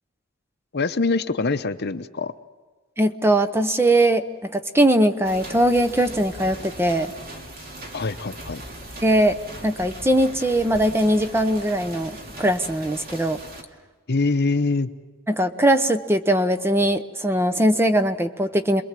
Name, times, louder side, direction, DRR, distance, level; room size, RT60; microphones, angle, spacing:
voice 1, 0.7-2.3 7.9-8.6 14.1-14.9, left 3 dB, 50° left, 11 dB, 0.8 m, -24 dB
voice 2, 3.0-7.1 9.0-9.4 9.6-13.4 15.3-18.8, right 1 dB, 10° right, 10 dB, 0.8 m, -20 dB
sound 1, 5.2-13.6, right 1 dB, 45° right, 2.7 m, -39 dB
27.0 x 21.5 x 7.5 m, 1.3 s
head